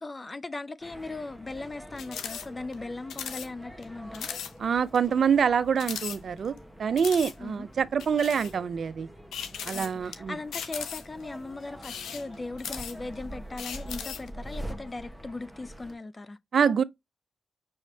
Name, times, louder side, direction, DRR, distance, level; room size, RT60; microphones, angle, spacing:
voice 1, 0.0-4.4 7.4-7.7 9.7-16.4, left 3 dB, 35° left, 0.4 m, -38 dB
sound 1, 0.8-16.0, equal, 5° left, 1.2 m, -45 dB
sound 2, 2.0-2.5 2.7-2.8 3.1-3.5 3.8-3.9 4.1-4.5 4.9-5.0 5.8-6.6 7.0-7.3 8.0-8.5 9.3-10.1 10.5-11.2 11.7-13.1 13.6-14.3, left 8 dB, 85° left, 0.6 m, -37 dB
voice 2, 4.6-6.5 6.8-9.1 9.6-10.4 16.5-16.8, right 7 dB, 70° right, 0.4 m, -25 dB
6.2 x 3.2 x 2.7 m
supercardioid pair, 40°, 0 cm